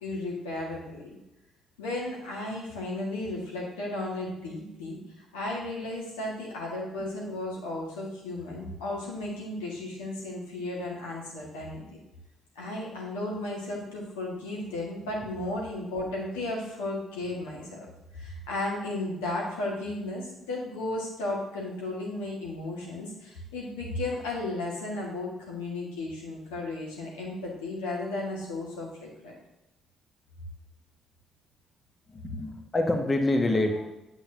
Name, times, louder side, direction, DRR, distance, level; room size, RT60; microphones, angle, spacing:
voice 1, 0.0-1.2 1.8-11.8 12.6-17.9 18.1-29.3, left 2 dB, 75° left, -3 dB, 1.7 m, -34 dB
voice 2, 32.1-33.9, left 2 dB, 25° left, 4 dB, 1.1 m, -26 dB
8.4 x 7.0 x 2.8 m, 0.94 s
figure-of-eight pair, 45°, 0 cm